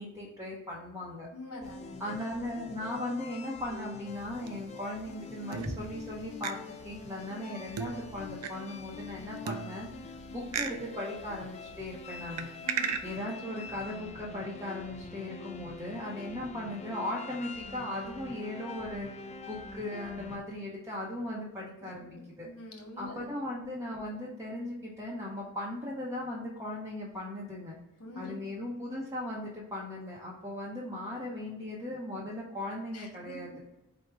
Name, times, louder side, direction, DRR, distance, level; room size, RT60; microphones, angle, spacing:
voice 1, 0.0-1.3 2.0-6.6 6.8-12.5 13.0-22.5 23.0-27.8 28.2-33.6, left 1 dB, 15° right, -5 dB, 0.6 m, -38 dB
voice 2, 1.3-2.0 12.6-13.0 22.4-23.3 28.0-28.3 32.9-33.3, left 2 dB, 80° left, 2 dB, 1.0 m, -44 dB
sound 1, 1.6-20.4, left 4 dB, 30° left, 0.3 m, -45 dB
sound 2, 4.1-4.9 5.5-6.1 6.4-6.5 7.8-8.5 9.5-10.1 10.5-10.8 12.4-13.0, right 7 dB, 85° right, 0.4 m, -36 dB
4.6 x 2.0 x 4.5 m, 0.94 s
head